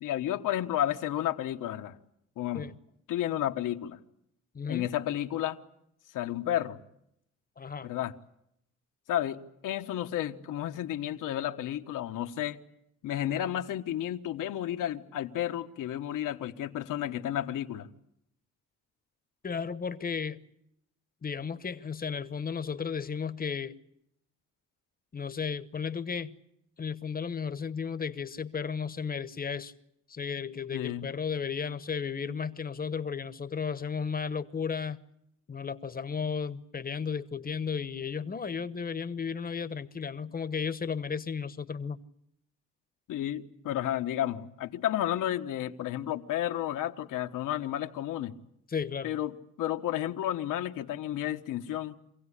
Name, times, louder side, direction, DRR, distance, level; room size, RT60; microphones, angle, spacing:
voice 1, 0.0-2.0 2.4-2.7 3.1-4.0 4.7-5.6 6.1-6.8 7.8-8.1 9.1-12.6 13.0-17.9 30.7-31.1 43.1-48.3 49.0-52.0, left 12 dB, 80° left, 1.4 m, -32 dB
voice 2, 4.5-4.9 7.6-7.9 19.4-20.4 21.2-23.8 25.1-26.4 26.8-29.7 30.1-35.0 35.5-42.0 48.7-49.2, left 6 dB, 30° left, 1.1 m, -34 dB
26.0 x 16.5 x 9.9 m
cardioid pair, 110°, 31 cm